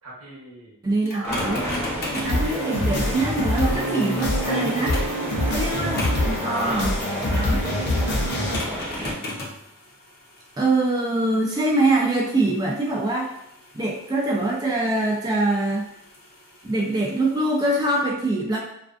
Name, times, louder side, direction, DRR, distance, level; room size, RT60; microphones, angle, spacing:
voice 1, 0.0-0.8 1.1-1.8 5.3-5.7 6.4-6.9 7.2-7.6 8.0-8.8, right 1 dB, 80° right, -5 dB, 0.9 m, -37 dB
voice 2, 0.8-1.6 2.1-5.0 5.5-6.0 6.2-6.9 7.3-7.6 10.6-13.3 13.7-15.9 16.6-18.6, right 2 dB, 20° right, -3 dB, 0.3 m, -23 dB
sound 1, 1.1-5.2 6.0-6.4 8.3-18.0, left 2 dB, 45° left, 0.6 m, -39 dB
sound 2, 1.2-9.1, equal, 10° left, 0.8 m, -31 dB
sound 3, 2.2-8.6, left 1 dB, 90° left, 0.6 m, -25 dB
2.4 x 2.3 x 2.4 m, 0.78 s
head